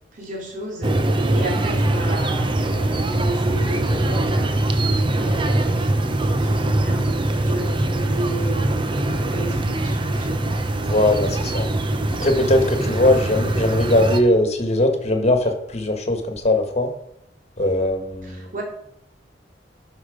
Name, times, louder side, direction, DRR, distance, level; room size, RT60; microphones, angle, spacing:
voice 1, 0.1-7.2 7.4-8.7 9.0-10.6 18.2-18.6, right 1 dB, 50° right, -1 dB, 2.6 m, -33 dB
sound 1, 0.8-14.2, right 1 dB, 30° right, 0.8 m, -22 dB
voice 2, 10.8-11.7 12.2-16.9 17.6-18.5, left 1 dB, 40° left, 5 dB, 1.6 m, -20 dB
11.5 x 5.7 x 5.1 m, 0.75 s
head